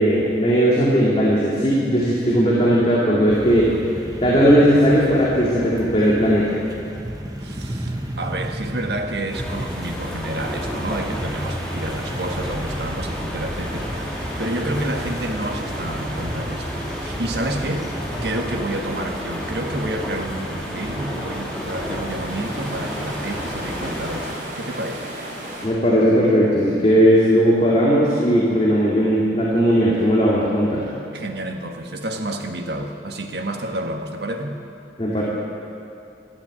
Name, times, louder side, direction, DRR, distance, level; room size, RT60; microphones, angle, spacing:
voice 1, 0.0-3.7 4.2-6.6 25.6-30.9 35.0-35.2, equal, 30° left, -6 dB, 2.1 m, -17 dB
sound 1, 3.3-18.4, equal, 20° right, 1.0 m, -33 dB
voice 2, 7.4-17.9 18.2-25.1 31.1-34.6, right 1 dB, 70° right, 3 dB, 1.4 m, -29 dB
sound 2, 9.3-24.3, equal, 5° left, 2.2 m, -31 dB
sound 3, 13.5-25.7, right 1 dB, 50° right, 3.8 m, -37 dB
13.0 x 12.0 x 8.5 m, 2.6 s
head